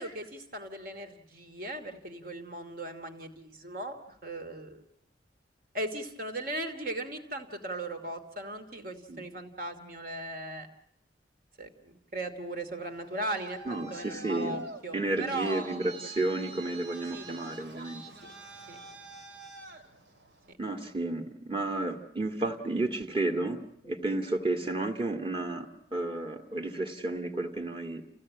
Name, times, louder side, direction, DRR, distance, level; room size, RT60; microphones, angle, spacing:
voice 1, 0.0-4.8 5.7-10.7 11.6-15.8 17.1-17.3 18.2-18.3 18.7-18.8 20.5-20.6, right 1 dB, 55° right, 7 dB, 2.7 m, -38 dB
Traffic noise roadway noise, 12.8-20.5, right 2 dB, 85° right, 2.6 m, -46 dB
voice 2, 13.7-14.6 14.9-18.0 20.6-28.0, right 2 dB, 30° right, 4 dB, 2.1 m, -32 dB
29.0 x 16.5 x 8.6 m, 0.78 s
head